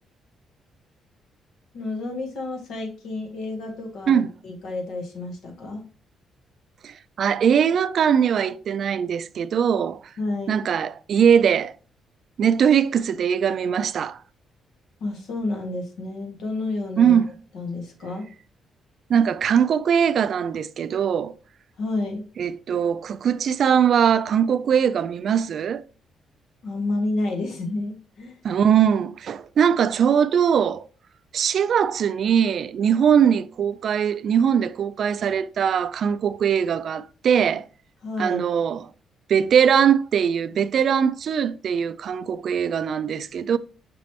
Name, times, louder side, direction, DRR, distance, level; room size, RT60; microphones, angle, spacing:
voice 1, 1.7-5.8 10.2-10.7 15.0-17.2 17.5-18.3 21.8-22.2 26.6-28.4 38.0-38.4, left 2 dB, 75° left, 1.5 m, -30 dB
voice 2, 6.8-10.0 10.5-11.7 12.4-14.2 17.0-17.3 19.1-21.4 22.4-25.8 28.4-30.9 31.3-37.6 38.2-38.9 39.3-43.6, right 8 dB, 60° right, 0.3 m, -21 dB
6.0 x 3.1 x 2.8 m
cardioid pair, 90°, 0 cm